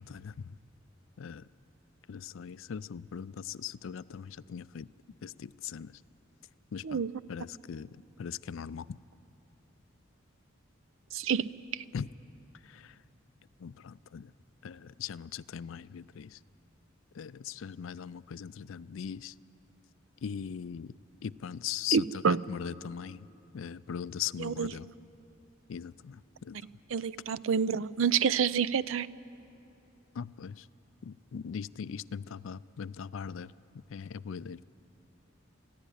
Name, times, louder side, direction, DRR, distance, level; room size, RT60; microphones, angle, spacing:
voice 1, 2.1-3.3 3.6-4.2 4.5-4.8 5.2-5.3 5.7-5.9 6.7-6.8 7.3-7.9 8.2-8.8 11.9-12.1 13.6-13.7 14.1-14.2 14.6-14.7 15.0-16.3 17.2-17.3 17.6-19.2 20.2-20.9 21.2-22.0 22.5-23.2 23.5-24.8 25.7-25.9 26.5-26.6 30.2-30.5 31.1-33.5 33.9-34.6, left 8 dB, 75° left, 18 dB, 0.4 m, -39 dB
voice 2, 11.1-11.5 21.9-22.4 24.4-24.7 26.9-29.1, right 6 dB, 80° right, 18 dB, 0.5 m, -28 dB
28.5 x 11.5 x 9.9 m, 2.8 s
head